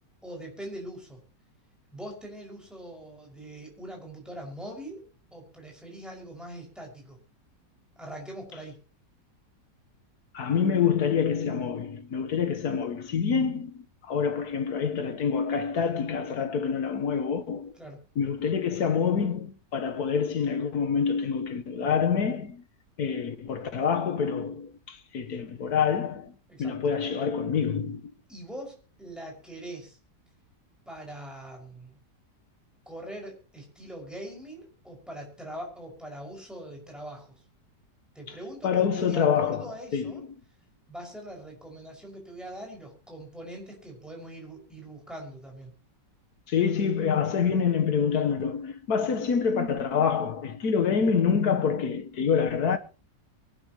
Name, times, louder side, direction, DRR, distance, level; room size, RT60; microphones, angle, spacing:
voice 1, 0.2-1.2 1.9-5.1 5.3-7.2 8.0-8.8 17.7-18.0 26.5-26.8 28.3-30.0 30.9-32.0 32.9-37.3 38.1-40.2 40.9-45.7, right 1 dB, ahead, 5.9 m, -42 dB
voice 2, 10.3-17.7 18.2-22.6 23.0-26.3 26.6-28.1 38.6-39.6 39.9-40.2 46.5-52.8, left 6 dB, 65° left, 1.7 m, -26 dB
23.5 x 12.0 x 3.1 m
omnidirectional pair, 1.9 m